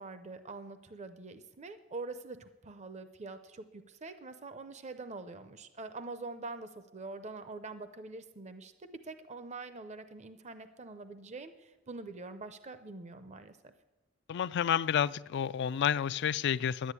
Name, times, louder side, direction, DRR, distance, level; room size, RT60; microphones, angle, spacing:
voice 1, 0.0-13.7, right 3 dB, 35° right, 10 dB, 0.6 m, -45 dB
voice 2, 14.3-16.9, left 8 dB, 60° left, 17 dB, 0.4 m, -30 dB
11.0 x 10.0 x 8.3 m, 1.1 s
head